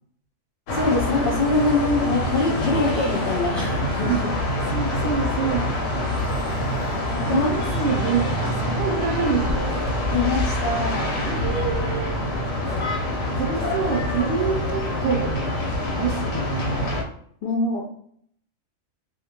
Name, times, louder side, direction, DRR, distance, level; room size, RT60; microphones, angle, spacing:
sound 1, 0.7-17.0, left 1 dB, 85° left, 1.0 m, -25 dB
voice 1, 0.7-4.2 7.1-7.5 10.1-11.1 17.4-17.8, left 3 dB, 60° left, -1 dB, 0.6 m, -23 dB
voice 2, 4.7-5.7 7.2-9.8 11.3-12.2 13.4-15.5 15.9-16.8, right 5 dB, 70° right, 3 dB, 0.8 m, -27 dB
sound 2, 9.7-10.0 10.9-11.2 12.6-12.9 14.1-14.3, right 1 dB, 30° right, 0.7 m, -39 dB
2.3 x 2.1 x 2.8 m, 0.64 s
omnidirectional pair, 1.3 m